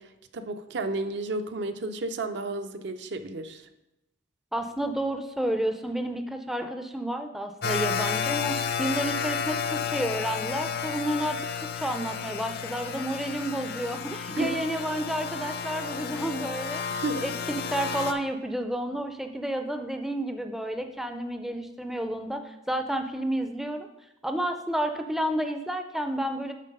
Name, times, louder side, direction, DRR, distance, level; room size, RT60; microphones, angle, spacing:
voice 1, 0.0-3.7 14.4-14.6 16.9-17.2, right 2 dB, 65° right, 8 dB, 0.5 m, -32 dB
voice 2, 4.5-11.4 11.8-16.8 17.2-23.9 24.2-26.5, right 1 dB, ahead, 6 dB, 0.4 m, -30 dB
sound 1, 7.6-18.1, left 7 dB, 55° left, 0.5 m, -32 dB
7.5 x 4.0 x 5.3 m, 0.91 s
head